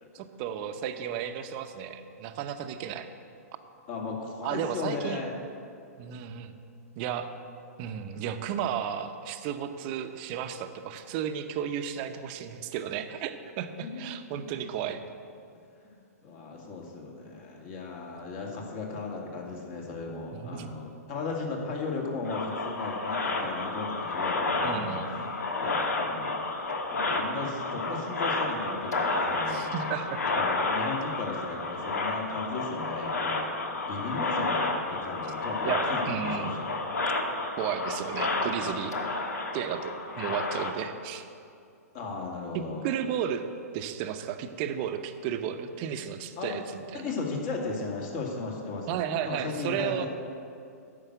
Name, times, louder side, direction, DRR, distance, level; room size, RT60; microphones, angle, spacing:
voice 1, 0.1-3.1 4.4-5.2 6.0-6.5 7.0-7.3 7.8-15.0 20.3-20.7 24.6-25.1 29.5-30.2 35.6-36.5 37.6-38.9 39.5-41.2 42.5-43.5 43.7-47.1 48.9-50.1, right 9 dB, 40° right, 8 dB, 0.8 m, -33 dB
voice 2, 3.9-5.4 13.8-14.5 15.5-25.1 25.6-26.4 26.9-29.6 30.3-33.5 33.9-36.6 41.9-42.9 46.4-46.6 46.9-50.1, left 3 dB, 45° left, -1 dB, 2.3 m, -36 dB
sound 1, 22.3-40.7, left 3 dB, 80° left, 1.3 m, -31 dB
10.0 x 6.8 x 8.0 m, 2.4 s
hypercardioid pair, 120°, 9 cm